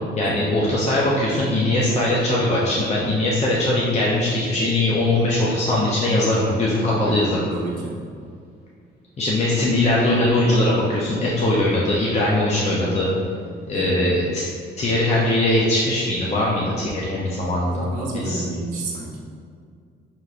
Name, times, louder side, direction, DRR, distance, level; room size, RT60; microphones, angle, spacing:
voice 1, 0.2-7.4 9.2-13.1 13.7-14.4 14.8-17.9 18.1-18.4, left 1 dB, 35° left, -5 dB, 0.7 m, -21 dB
voice 2, 7.0-8.0 13.7-14.0 17.7-19.2, right 2 dB, 40° right, -5 dB, 0.7 m, -31 dB
5.6 x 3.0 x 2.5 m, 2.2 s
cardioid pair, 90°, 20 cm